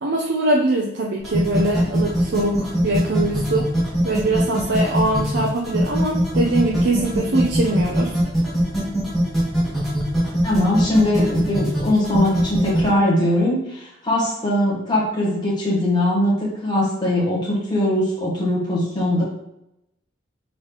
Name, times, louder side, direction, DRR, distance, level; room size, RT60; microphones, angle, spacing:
voice 1, 0.0-3.7 4.0-8.1, right 2 dB, 65° right, -1 dB, 0.5 m, -22 dB
sound 1, 1.2-12.9, right 1 dB, ahead, 1.3 m, -22 dB
voice 2, 10.4-19.2, left 1 dB, 20° left, -6 dB, 1.4 m, -21 dB
3.9 x 3.8 x 3.4 m, 0.83 s
head